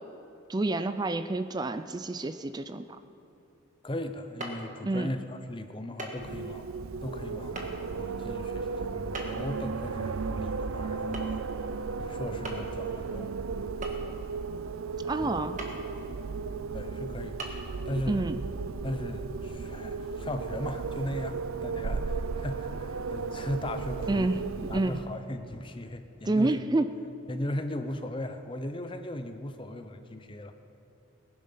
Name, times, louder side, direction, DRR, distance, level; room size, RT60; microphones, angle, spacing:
voice 1, 0.5-2.8 4.8-5.1 15.0-15.6 18.1-18.4 24.1-25.0 26.3-27.0, right 2 dB, 20° right, 11 dB, 0.4 m, -28 dB
voice 2, 3.8-6.7 7.0-11.4 12.0-13.3 15.2-15.4 16.7-17.5 17.8-18.3 18.8-24.3 24.7-26.5 27.3-30.5, left 1 dB, 25° left, 8 dB, 0.7 m, -37 dB
sound 1, 4.4-4.6 6.0-6.2 6.5-6.6 7.6-7.7 9.1-9.5 11.1-11.4 11.7-11.8 12.4-12.8 13.8-14.3 15.6-15.8 16.4-16.5 17.4-17.5, right 2 dB, 35° right, 1.6 m, -38 dB
Wind, 6.1-25.2, right 4 dB, 80° right, 0.5 m, -35 dB
19.0 x 10.5 x 5.7 m, 2.7 s
head